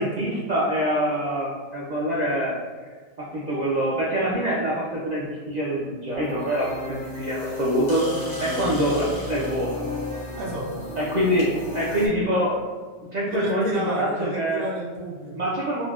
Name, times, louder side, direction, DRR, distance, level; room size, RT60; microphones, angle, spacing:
voice 1, 0.0-2.5 3.2-8.0 8.4-9.8 11.0-12.6 13.1-14.6 15.3-15.8, equal, 60° right, -6 dB, 0.4 m, -25 dB
sound 1, 6.1-12.1, left 2 dB, 90° left, 1.3 m, -33 dB
voice 2, 10.4-10.9 11.3-11.4 13.3-15.4, right 1 dB, 90° right, -3 dB, 1.0 m, -32 dB
3.8 x 2.1 x 2.3 m, 1.5 s
omnidirectional pair, 1.2 m